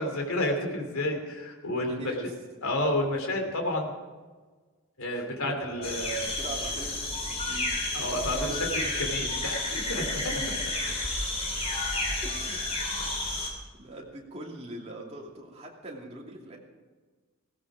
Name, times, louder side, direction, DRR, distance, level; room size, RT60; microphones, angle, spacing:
voice 1, 0.0-2.1 2.6-3.9 5.0-6.3 7.9-8.5 9.0-10.3 13.0-13.1, left 1 dB, 70° left, 3 dB, 3.0 m, -30 dB
voice 2, 1.9-2.3 5.1-7.7 8.3-8.7 9.1-9.5 9.9-10.5 12.2-12.8 13.1-16.6, right 1 dB, 30° right, -2 dB, 2.7 m, -42 dB
sound 1, 5.8-13.5, left 2 dB, 25° left, 3.2 m, -31 dB
16.5 x 15.5 x 5.0 m, 1.4 s
head